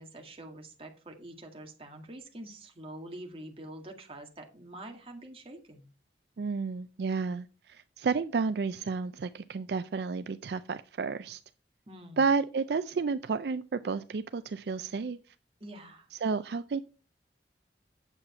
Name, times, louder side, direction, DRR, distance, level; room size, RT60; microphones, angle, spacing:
voice 1, 0.0-5.9 11.9-12.3 15.6-16.1, right 1 dB, 30° right, 3 dB, 1.9 m, -46 dB
voice 2, 6.4-11.4 12.2-15.2 16.2-16.8, right 4 dB, 65° right, 12 dB, 0.4 m, -31 dB
9.0 x 7.3 x 4.3 m, 0.34 s
head